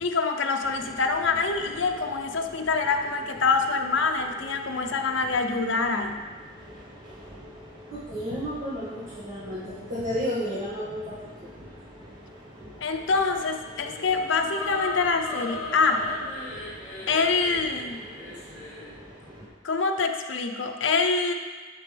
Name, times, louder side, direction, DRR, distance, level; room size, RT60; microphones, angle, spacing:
voice 1, 0.0-6.2 12.8-16.1 17.1-18.0 19.6-21.3, left 4 dB, 70° left, 4 dB, 0.7 m, -25 dB
sound 1, 0.6-19.5, equal, 20° right, 1.0 m, -46 dB
voice 2, 7.9-11.5, equal, 45° right, -11 dB, 1.8 m, -32 dB
sound 2, 13.7-18.9, left 2 dB, 25° left, 2.2 m, -37 dB
10.5 x 5.2 x 3.4 m, 1.5 s
head